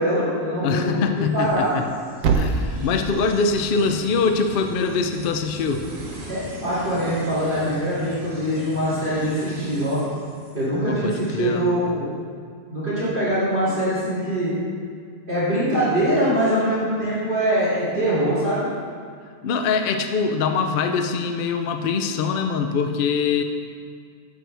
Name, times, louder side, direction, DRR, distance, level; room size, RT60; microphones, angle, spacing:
voice 1, 0.0-1.7 6.3-10.0 10.5-12.1 12.7-14.5 15.3-18.7, right 1 dB, 35° right, -11 dB, 2.7 m, -23 dB
voice 2, 0.6-1.9 2.3-5.9 10.7-11.7 19.4-23.4, left 5 dB, 70° left, 6 dB, 0.5 m, -23 dB
sound 1, 1.3-11.0, right 1 dB, 65° right, 1.9 m, -39 dB
Thump thud, 1.3-5.4, right 4 dB, 90° right, 1.2 m, -29 dB
9.2 x 7.8 x 3.3 m, 2.2 s
omnidirectional pair, 1.5 m